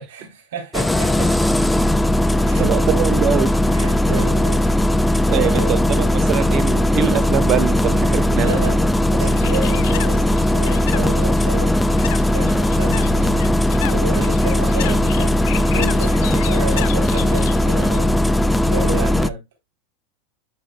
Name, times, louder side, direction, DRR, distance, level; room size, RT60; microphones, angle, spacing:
voice 1, 0.1-1.4 2.4-2.7 3.7-5.7 8.4-8.8 9.2-11.8 12.3-13.6 13.9-18.2 18.6-19.4, right 4 dB, 80° right, 3.5 m, -30 dB
Engine starting, 0.7-19.3, left 1 dB, 5° left, 0.4 m, -18 dB
voice 2, 2.6-3.6 5.3-8.7 9.1-9.2, right 9 dB, 40° right, 1.0 m, -23 dB
Bird, 9.2-18.1, left 18 dB, 65° left, 0.5 m, -34 dB
10.5 x 5.6 x 2.2 m
supercardioid pair, 135°, 0 cm